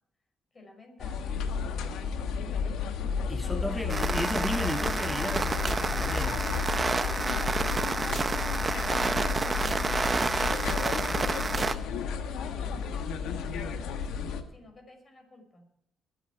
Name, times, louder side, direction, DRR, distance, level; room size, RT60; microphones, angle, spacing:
voice 1, 0.5-2.9 3.4-3.9 5.7-10.8 11.3-14.0 14.5-15.7, left 2 dB, 35° left, 4 dB, 5.6 m, -51 dB
sound 1, 1.0-14.4, left 6 dB, 85° left, 1.5 m, -32 dB
voice 2, 3.3-6.5, left 1 dB, 10° left, 9 dB, 0.9 m, -34 dB
sound 2, 3.9-11.8, right 3 dB, 30° right, 1.0 m, -29 dB
21.5 x 9.4 x 4.7 m, 0.74 s
cardioid pair, 90°, 0 cm